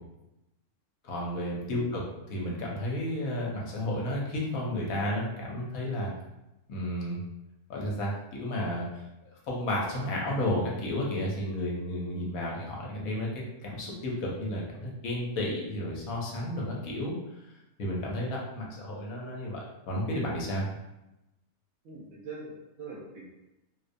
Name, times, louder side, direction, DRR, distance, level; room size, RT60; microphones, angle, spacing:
voice 1, 1.0-2.0 2.3-6.1 6.7-7.2 7.7-9.0 9.5-13.3 13.6-17.2 17.8-20.7, left 1 dB, 75° left, -2 dB, 1.1 m, -32 dB
voice 2, 21.8-23.3, right 3 dB, 65° right, -5 dB, 0.7 m, -43 dB
2.5 x 2.1 x 2.5 m, 0.93 s
omnidirectional pair, 1.5 m